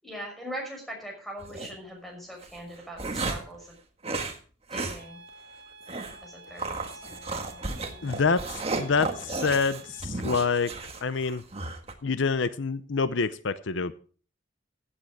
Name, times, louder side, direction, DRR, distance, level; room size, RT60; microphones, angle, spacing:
voice 1, 0.0-3.8 4.7-5.2 6.2-8.2, equal, ahead, 1 dB, 5.6 m, -41 dB
sound 1, 1.4-1.7 2.4-3.6 4.0-4.4 4.7-5.0 5.3-5.4 5.9-6.2 6.6-11.9, right 3 dB, 30° right, 1.6 m, -34 dB
sound 2, 5.0-10.0, right 2 dB, 60° right, 2.5 m, -50 dB
voice 2, 8.0-10.7 11.0-11.4 12.0-13.9, left 4 dB, 75° left, 14 dB, 0.6 m, -27 dB
15.5 x 8.8 x 4.7 m, 0.41 s
head